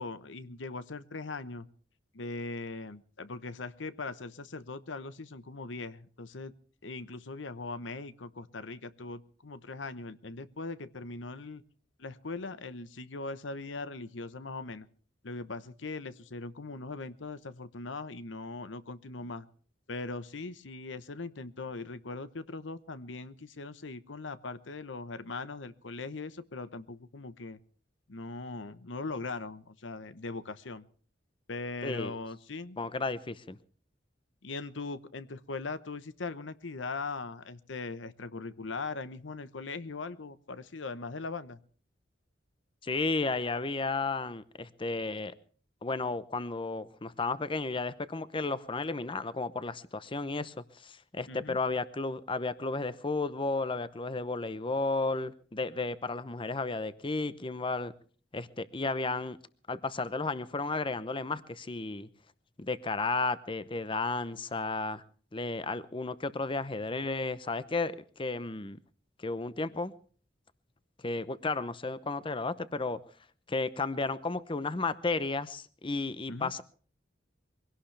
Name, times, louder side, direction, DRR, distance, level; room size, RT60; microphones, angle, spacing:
voice 1, 0.0-1.7 2.1-6.5 6.8-11.6 12.0-14.9 15.2-19.5 19.9-27.6 28.1-30.9 31.5-32.8 34.4-41.6 51.3-51.6 76.3-76.5, left 3 dB, 90° left, 14 dB, 1.0 m, -40 dB
voice 2, 31.8-32.2 32.8-33.6 42.8-45.3 45.8-57.9 58.3-59.4 59.7-62.1 62.6-65.0 65.3-68.8 69.2-69.9 71.0-73.0 73.5-76.6, left 3 dB, 30° left, 14 dB, 0.8 m, -33 dB
23.5 x 17.5 x 3.3 m, 0.43 s
head